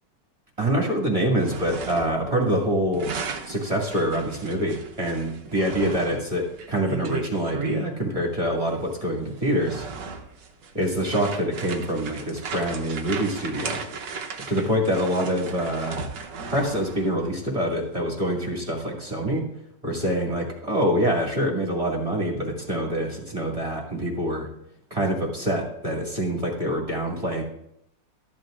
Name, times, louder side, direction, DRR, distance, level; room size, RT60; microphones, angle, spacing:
voice 1, 0.6-3.1 3.4-9.9 10.7-13.8 14.5-16.0 16.5-19.4 19.8-24.5 24.9-27.4, equal, 20° right, -3 dB, 2.2 m, -25 dB
sound 1, 1.3-2.3 2.5-7.9 8.8-8.9 9.4-17.2, right 5 dB, 75° right, 1.6 m, -36 dB
13.5 x 11.0 x 2.5 m, 0.76 s
omnidirectional pair, 2.0 m